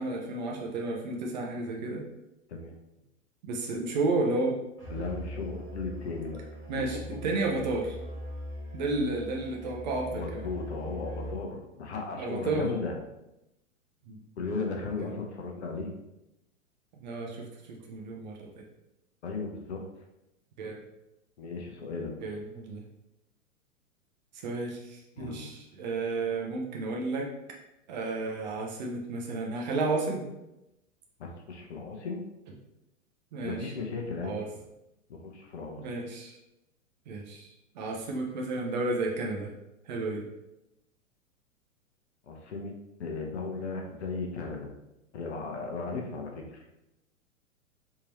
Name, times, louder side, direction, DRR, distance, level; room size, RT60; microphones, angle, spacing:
voice 1, 0.0-2.0 3.4-4.6 6.7-8.0 8.7-10.5 12.2-12.7 14.1-14.2 15.0-15.1 17.0-18.6 20.6-20.8 22.2-22.8 24.3-27.3 27.9-30.3 33.3-33.7 34.2-34.5 35.8-36.4 37.1-39.5 39.9-40.3 45.9-46.1, right 2 dB, 35° right, 0 dB, 0.5 m, -32 dB
Musical instrument, 4.8-11.6, equal, 10° left, 1.4 m, -41 dB
voice 2, 4.9-6.4 7.1-7.2 10.1-12.9 14.4-15.9 19.2-19.8 21.4-22.2 25.2-25.4 31.2-32.2 33.4-34.3 35.1-35.8 42.3-42.7 43.0-44.7 45.1-46.6, left 4 dB, 55° left, 2 dB, 0.8 m, -36 dB
3.6 x 2.8 x 3.0 m, 0.92 s
figure-of-eight pair, 105°, 40 cm